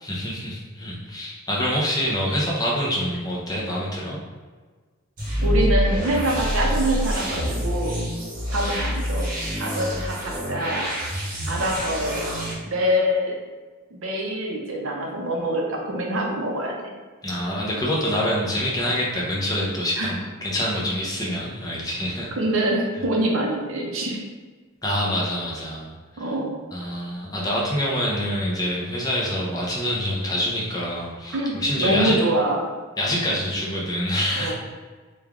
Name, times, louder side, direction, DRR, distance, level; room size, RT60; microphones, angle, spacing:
voice 1, 0.0-4.2 17.2-22.3 24.8-26.3 26.7-32.2 33.0-34.5, equal, 20° left, -4 dB, 0.6 m, -26 dB
sound 1, 5.2-12.5, equal, 40° right, 0.9 m, -26 dB
voice 2, 5.4-8.0 8.5-9.3 9.6-10.9 11.5-12.2 12.7-13.4 13.9-16.9 20.0-20.1 22.4-24.2 26.2-26.6 31.3-32.6 34.4-34.5, right 1 dB, 70° right, 0 dB, 0.6 m, -25 dB
3.2 x 2.3 x 3.6 m, 1.4 s
head